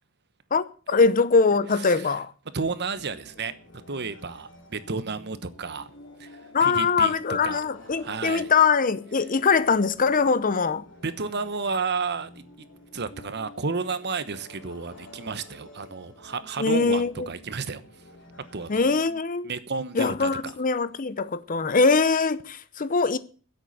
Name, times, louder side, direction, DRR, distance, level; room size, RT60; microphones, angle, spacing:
voice 1, 0.5-2.3 6.5-10.8 16.6-17.3 18.7-19.5 19.9-23.2, left 4 dB, 40° left, 0.7 m, -22 dB
voice 2, 1.8-2.1 2.5-3.5 3.9-5.9 6.2-7.6 7.9-8.5 11.0-12.7 12.9-17.8 18.5-19.2 19.4-20.5, right 4 dB, 50° right, 1.1 m, -32 dB
sound 1, 2.9-19.0, left 1 dB, 60° left, 2.3 m, -50 dB
10.0 x 8.1 x 9.3 m
head